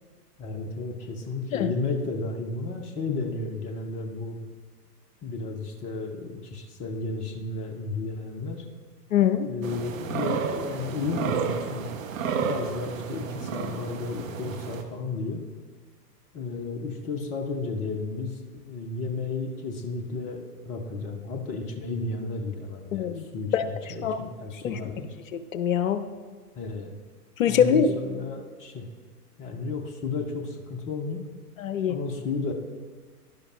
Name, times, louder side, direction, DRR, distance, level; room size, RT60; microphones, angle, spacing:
voice 1, 0.4-4.4 5.2-8.6 9.5-11.9 12.4-15.5 16.3-18.4 18.7-25.1 26.5-27.0 27.4-28.9 29.4-31.2 31.9-32.5, left 3 dB, 15° left, 3 dB, 0.5 m, -33 dB
voice 2, 9.1-9.5 22.9-23.2 23.5-23.7 24.0-24.2 24.6-24.8 25.3-26.0 27.4-27.9 31.6-31.9, left 8 dB, 55° left, 10 dB, 0.7 m, -23 dB
sound 1, 9.6-14.8, right 6 dB, 55° right, 1.0 m, -31 dB
11.5 x 11.0 x 2.4 m, 1.5 s
figure-of-eight pair, 105°, 48 cm